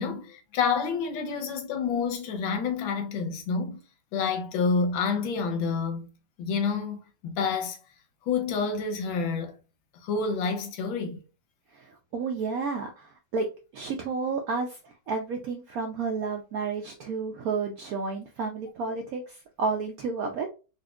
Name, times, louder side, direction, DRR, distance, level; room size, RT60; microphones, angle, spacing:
voice 1, 0.0-3.8 4.1-6.1 6.4-7.8 8.3-9.6 10.0-11.2, left 5 dB, 90° left, 1.5 m, -28 dB
voice 2, 11.7-13.5 13.7-14.8 15.1-20.5, right 4 dB, 80° right, 0.8 m, -31 dB
4.1 x 2.5 x 2.3 m
omnidirectional pair, 2.1 m